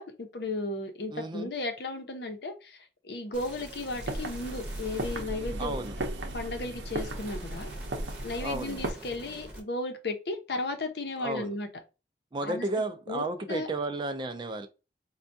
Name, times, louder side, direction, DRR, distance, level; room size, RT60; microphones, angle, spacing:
voice 1, 0.0-5.8 6.3-7.7 8.2-11.7 12.4-12.8 13.1-13.7, left 2 dB, 65° left, 0.7 m, -35 dB
voice 2, 1.1-1.5 5.6-6.0 8.4-8.8 11.2-11.5 12.3-14.7, right 2 dB, 25° right, 0.3 m, -33 dB
sound 1, 3.3-9.6, right 1 dB, 5° right, 0.8 m, -46 dB
sound 2, 3.9-8.9, right 1 dB, 85° right, 0.7 m, -36 dB
4.4 x 2.3 x 2.6 m
head